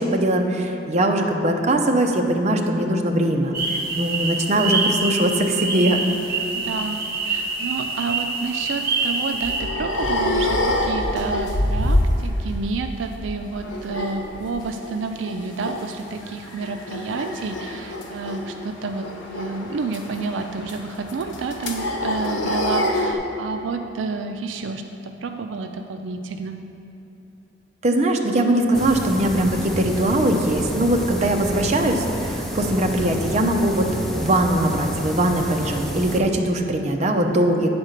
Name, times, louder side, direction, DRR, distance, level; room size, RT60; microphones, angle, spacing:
voice 1, 0.0-6.0 27.8-33.9 34.1-37.7, right 1 dB, 40° right, 3 dB, 0.6 m, -21 dB
sound 1, 3.5-9.6, right 3 dB, 55° right, 1.0 m, -26 dB
voice 2, 6.5-26.6, right 4 dB, 75° right, 6 dB, 0.4 m, -30 dB
sound 2, 9.0-12.7 12.9-14.9 15.2-15.9 16.2-23.2, left 1 dB, 90° left, 0.9 m, -26 dB
sound 3, 28.7-36.2, equal, ahead, 0.6 m, -30 dB
8.9 x 4.3 x 6.5 m, 2.9 s
head